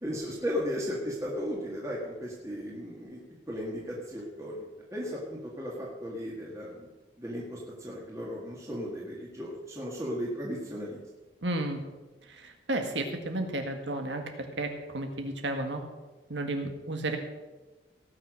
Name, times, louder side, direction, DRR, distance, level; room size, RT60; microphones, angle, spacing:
voice 1, 0.0-3.2 3.5-6.9 7.2-11.0, equal, 15° right, -4 dB, 1.8 m, -36 dB
voice 2, 11.4-11.8 12.4-14.2 14.6-15.8 16.3-17.2, right 1 dB, 80° right, 5 dB, 1.8 m, -32 dB
18.0 x 6.1 x 6.3 m, 1.2 s
head